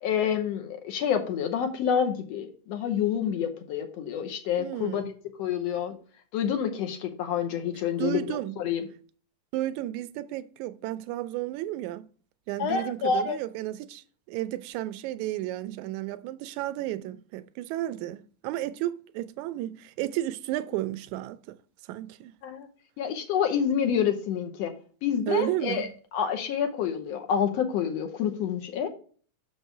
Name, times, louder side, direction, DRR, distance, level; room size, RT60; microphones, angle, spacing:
voice 1, 0.0-5.1 5.4-6.0 6.3-8.8 12.6-13.4 22.4-22.7 23.0-24.7 25.0-25.9 26.1-28.9, left 8 dB, 70° left, 1.8 m, -28 dB
voice 2, 4.6-5.1 8.0-8.6 9.5-12.0 12.5-21.6 21.9-22.3 25.3-25.9, right 14 dB, 80° right, 1.9 m, -32 dB
6.6 x 5.5 x 4.6 m
omnidirectional pair, 3.5 m